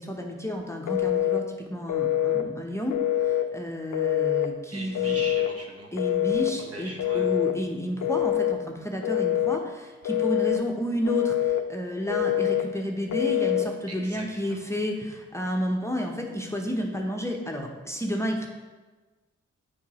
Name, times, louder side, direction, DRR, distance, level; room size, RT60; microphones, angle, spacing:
voice 1, 0.0-5.2 5.9-18.5, equal, 10° left, 1 dB, 0.8 m, -31 dB
Telephone, 0.9-1.4 1.9-2.5 2.9-3.5 3.9-4.5 5.0-5.5 6.0-6.5 7.0-7.6 8.0-8.6 9.0-9.6 10.1-10.6 11.0-11.6 12.1-12.7 13.1-13.7, left 12 dB, 70° left, 0.5 m, -25 dB
voice 2, 4.7-5.9 6.7-7.3 13.9-14.6, right 1 dB, 50° right, 1 dB, 1.2 m, -40 dB
7.2 x 4.7 x 3.1 m, 1.3 s
supercardioid pair, 45°, 32 cm